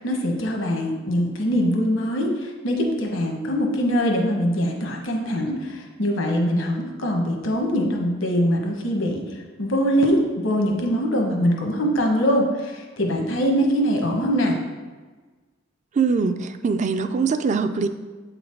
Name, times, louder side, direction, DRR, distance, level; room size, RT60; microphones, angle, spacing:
voice 1, 0.0-9.2 9.6-14.6, equal, 75° left, 1 dB, 1.1 m, -23 dB
voice 2, 15.9-17.9, right 5 dB, 40° right, 9 dB, 0.4 m, -22 dB
7.9 x 3.9 x 4.5 m, 1.3 s
head